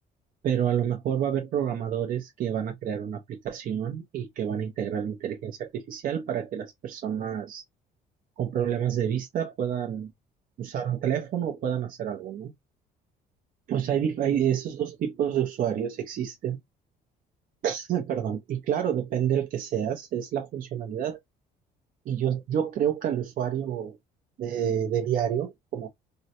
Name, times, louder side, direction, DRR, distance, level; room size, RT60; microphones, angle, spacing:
voice 1, 0.4-7.6 8.4-10.1 10.6-12.5 13.7-16.6 17.6-21.2 22.1-24.0 24.4-25.9, right 9 dB, 55° right, 0.7 m, -28 dB
3.8 x 2.1 x 2.8 m
cardioid pair, 110°, 17 cm